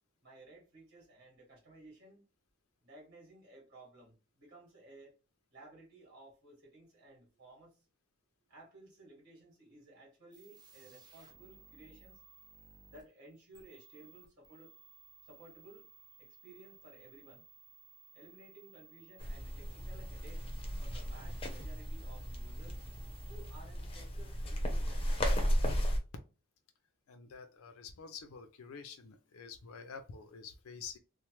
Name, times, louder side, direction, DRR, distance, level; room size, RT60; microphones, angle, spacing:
voice 1, 0.2-2.3 2.8-5.1 5.5-7.8 8.5-12.2 12.9-14.7 15.2-15.9 16.2-17.5 18.1-20.5 20.8-22.8 23.3-25.1, right 2 dB, 50° right, 1.6 m, -57 dB
sound 1, 10.3-23.6, right 6 dB, 20° right, 0.6 m, -60 dB
sound 2, 19.2-26.0, equal, 25° left, 0.6 m, -35 dB
voice 2, 27.1-31.0, left 6 dB, 80° left, 0.4 m, -48 dB
3.1 x 2.0 x 3.0 m
head